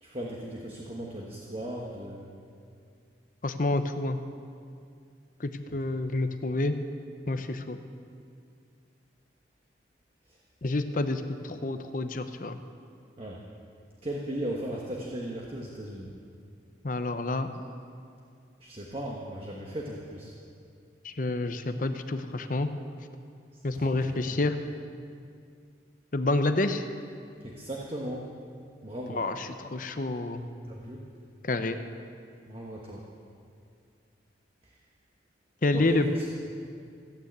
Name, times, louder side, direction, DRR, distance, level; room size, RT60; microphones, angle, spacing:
voice 1, 0.0-2.3 5.7-5.8 10.3-10.4 13.2-13.4 14.0-16.1 18.6-20.3 23.5-24.1 27.4-28.3 28.8-29.2 30.7-31.0 32.5-33.0 34.6-34.8 35.7-36.3, right 1 dB, 30° right, -2 dB, 1.3 m, -37 dB
voice 2, 3.4-4.2 5.4-6.8 7.3-7.8 10.6-12.6 16.8-17.5 21.0-22.7 23.6-24.6 26.1-26.9 29.1-30.5 31.4-31.8 35.6-36.1, left 2 dB, 45° left, 9 dB, 0.7 m, -28 dB
16.0 x 9.1 x 8.1 m, 2.4 s
head